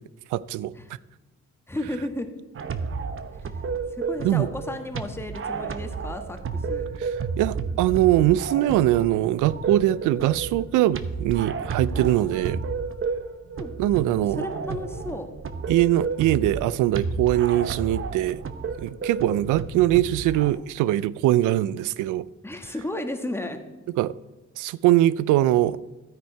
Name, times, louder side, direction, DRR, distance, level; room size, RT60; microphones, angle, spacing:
voice 1, 0.3-0.7 4.2-4.5 7.0-7.1 7.4-12.6 13.8-14.4 15.7-18.4 18.8-22.2 24.0-24.1 24.6-25.9, right 14 dB, 90° right, 0.5 m, -22 dB
voice 2, 1.7-2.3 4.0-6.9 11.9-13.7 14.4-15.3 22.4-23.6, left 1 dB, 10° left, 1.3 m, -34 dB
sound 1, 2.5-20.5, right 5 dB, 45° right, 0.9 m, -32 dB
13.0 x 9.4 x 4.5 m
cardioid pair, 90°, 30 cm